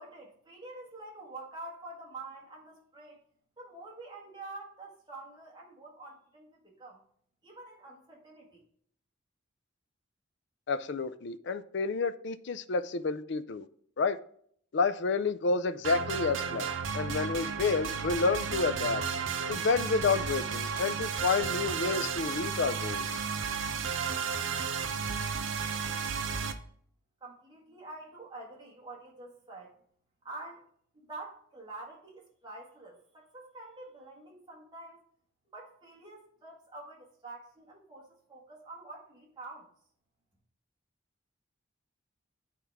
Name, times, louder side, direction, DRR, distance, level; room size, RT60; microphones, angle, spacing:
voice 1, 0.0-3.2 3.6-7.0 7.4-8.6 27.2-29.7 30.2-30.6 30.9-35.0 35.5-39.7, right 2 dB, 20° right, 1.7 m, -47 dB
voice 2, 10.7-13.7 14.0-14.2 14.7-19.0 19.5-23.1, left 4 dB, 55° left, 0.4 m, -30 dB
sound 1, 15.8-26.5, right 6 dB, 65° right, 0.5 m, -33 dB
9.0 x 4.6 x 3.5 m
head